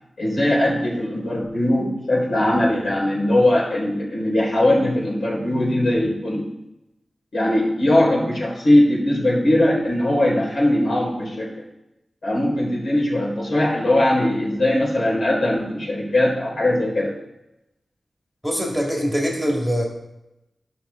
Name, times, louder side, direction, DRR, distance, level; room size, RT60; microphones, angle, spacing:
voice 1, 0.2-6.4 7.3-11.5 12.2-17.1, left 1 dB, 75° left, -5 dB, 4.2 m, -20 dB
voice 2, 18.4-19.9, equal, ahead, -1 dB, 1.9 m, -23 dB
14.5 x 5.9 x 4.3 m, 0.91 s
wide cardioid pair, 125°, 0 cm